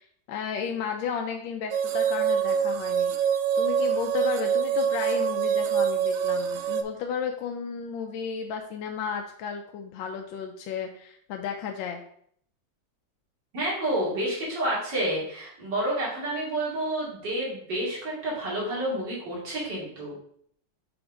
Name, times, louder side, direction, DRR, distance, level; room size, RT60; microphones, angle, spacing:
voice 1, 0.0-12.0, left 6 dB, 80° left, 3 dB, 1.3 m, -33 dB
sound 1, 1.7-6.8, right 7 dB, 80° right, 0.7 m, -25 dB
voice 2, 13.5-20.2, right 1 dB, 65° right, -6 dB, 3.0 m, -29 dB
6.4 x 3.5 x 4.8 m, 0.65 s
omnidirectional pair, 2.1 m